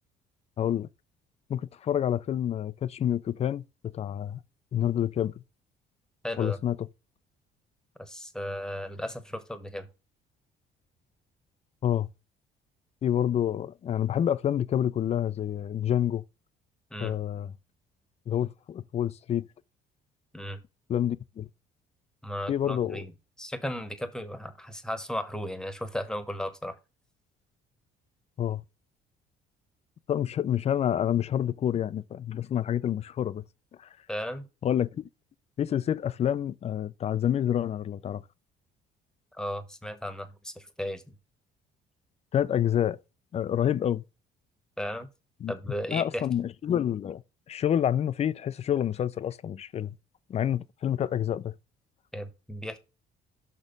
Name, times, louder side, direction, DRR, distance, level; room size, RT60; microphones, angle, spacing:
voice 1, 0.6-0.9 1.5-4.4 4.7-5.3 6.4-6.9 11.8-12.1 13.0-16.2 17.0-17.5 18.3-19.5 20.9-21.5 22.5-23.0 28.4-28.6 30.1-33.4 33.8-33.9 34.6-35.0 35.6-38.2 42.3-43.0 43.3-44.0 45.4-45.5 45.9-47.2 47.5-50.0 50.3-51.5, left 10 dB, 40° left, 0.5 m, -28 dB
voice 2, 6.2-6.6 8.0-9.9 16.9-17.2 20.3-20.6 22.2-23.1 23.4-26.7 34.1-34.5 39.3-41.1 44.8-45.1 45.5-46.3 52.1-52.8, equal, 5° left, 1.1 m, -35 dB
6.0 x 4.4 x 5.2 m
cardioid pair, 110°, 17 cm